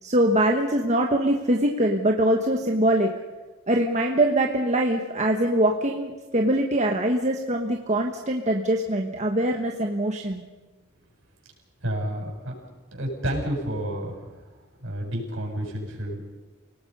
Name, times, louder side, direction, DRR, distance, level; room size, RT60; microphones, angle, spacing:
voice 1, 0.0-3.1 3.7-10.4, right 1 dB, 35° right, 2 dB, 1.3 m, -23 dB
voice 2, 11.8-12.6 12.9-14.2 14.8-16.4, equal, 65° right, 0 dB, 7.3 m, -30 dB
29.5 x 18.5 x 5.5 m, 1.2 s
head